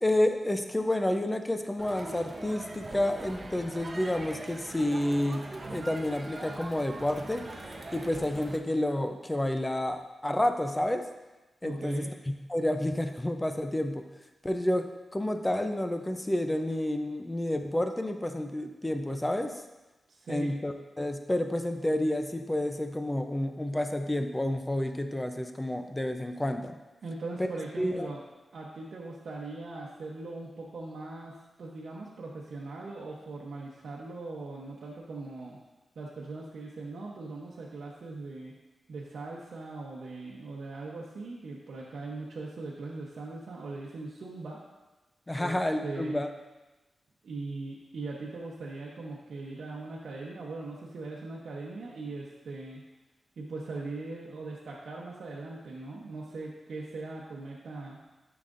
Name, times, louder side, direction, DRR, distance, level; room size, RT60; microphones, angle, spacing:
voice 1, 0.0-7.4 7.9-11.0 11.6-12.1 12.5-14.0 14.4-14.9 15.1-19.6 20.3-26.7 27.4-27.5 27.8-28.1 45.3-46.3, left 1 dB, 15° left, 6 dB, 0.6 m, -30 dB
Crowd, 1.8-8.6, right 2 dB, 35° right, 0.8 m, -42 dB
voice 2, 11.6-12.1 20.1-20.5 27.0-28.2 28.5-35.6 36.0-38.5 38.9-44.6 45.3-46.2 47.2-52.8 53.4-58.0, right 3 dB, 75° right, -4 dB, 0.9 m, -40 dB
9.7 x 5.8 x 2.6 m, 1.1 s
cardioid pair, 85°, 0 cm